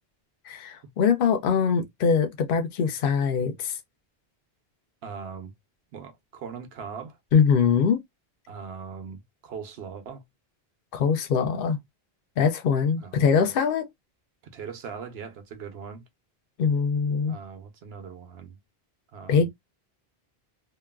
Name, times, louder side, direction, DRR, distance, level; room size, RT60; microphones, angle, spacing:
voice 1, 0.5-3.7 7.3-8.0 10.9-11.8 12.4-13.9 16.6-17.3 19.3-19.5, left 6 dB, 65° left, 0.7 m, -22 dB
voice 2, 5.0-5.5 5.9-7.2 8.5-10.2 13.0-13.4 14.5-16.0 17.3-18.6 19.1-19.5, right 6 dB, 80° right, 0.9 m, -40 dB
2.9 x 2.2 x 2.2 m
omnidirectional pair, 1.0 m